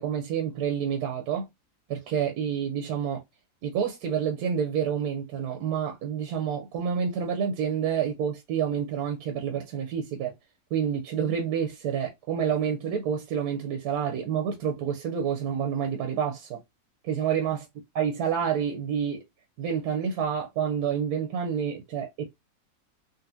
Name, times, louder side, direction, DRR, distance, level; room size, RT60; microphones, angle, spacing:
voice 1, 0.0-1.5 1.9-3.2 3.6-10.3 10.7-16.6 17.0-17.6 18.0-19.2 19.6-22.2, right 8 dB, 80° right, 1.2 m, -28 dB
4.0 x 2.2 x 2.6 m
omnidirectional pair, 1.7 m